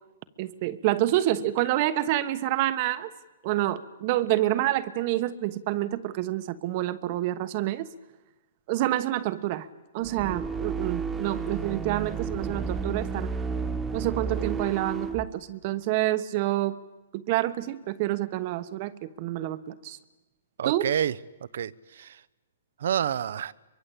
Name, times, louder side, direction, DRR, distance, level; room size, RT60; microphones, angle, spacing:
voice 1, 0.4-3.1 3.4-7.9 8.7-9.7 9.9-13.3 13.9-16.8 17.1-20.0 20.6-20.9, right 15 dB, 40° right, 13 dB, 1.2 m, -28 dB
sound 1, 10.0-15.3, right 5 dB, 10° right, 1.5 m, -32 dB
voice 2, 20.6-21.2 21.5-22.2 22.8-23.5, right 9 dB, 70° right, 20 dB, 0.9 m, -28 dB
24.0 x 22.5 x 8.6 m, 1.1 s
hypercardioid pair, 150°, 0 cm